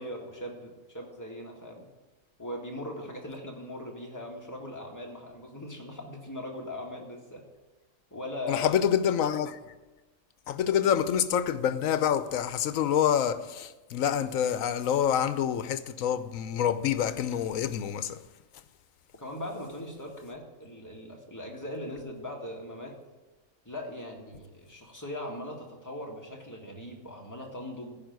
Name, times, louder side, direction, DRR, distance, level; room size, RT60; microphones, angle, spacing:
voice 1, 0.0-1.9 2.4-7.4 8.1-8.7 19.2-23.0 23.7-28.0, left 1 dB, 15° left, 2.0 m, -40 dB
voice 2, 8.5-9.6 10.5-18.2, left 9 dB, 80° left, 1.1 m, -27 dB
15.0 x 5.3 x 9.4 m
omnidirectional pair, 1.4 m